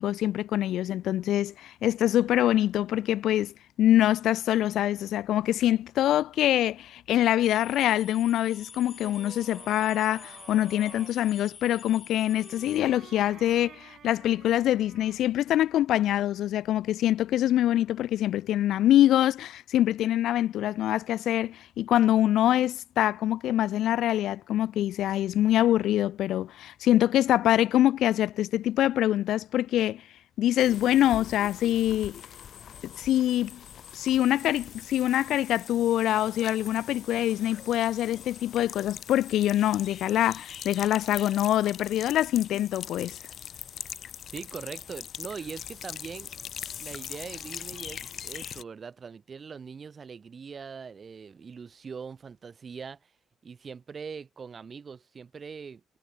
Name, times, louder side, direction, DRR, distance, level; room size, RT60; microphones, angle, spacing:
voice 1, 0.0-30.0 30.4-32.2 32.8-33.6 33.9-43.2, left 12 dB, 80° left, 0.4 m, -24 dB
sound 1, 7.4-12.8, left 6 dB, 45° left, 2.8 m, -47 dB
sound 2, 8.2-11.2 12.1-15.3, right 8 dB, 60° right, 1.4 m, -50 dB
sound 3, 30.6-48.6, left 9 dB, 60° left, 2.8 m, -42 dB
voice 2, 44.3-46.5 46.8-53.1 53.4-55.8, right 6 dB, 40° right, 3.0 m, -41 dB
cardioid pair, 90°, 0 cm